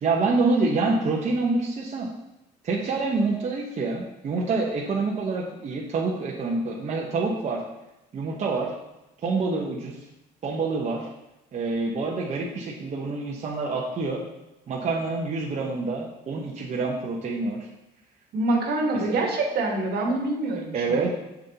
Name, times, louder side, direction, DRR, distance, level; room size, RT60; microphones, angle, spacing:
voice 1, 0.0-2.1 2.6-7.6 8.1-8.7 9.2-10.0 10.4-11.1 11.5-14.2 14.7-17.7 19.1-19.2 20.5-21.1, right 3 dB, 45° right, -3 dB, 1.0 m, -27 dB
voice 2, 18.3-21.1, right 2 dB, 70° right, 0 dB, 1.6 m, -25 dB
7.3 x 6.4 x 2.9 m, 0.92 s
cardioid pair, 110°, 17 cm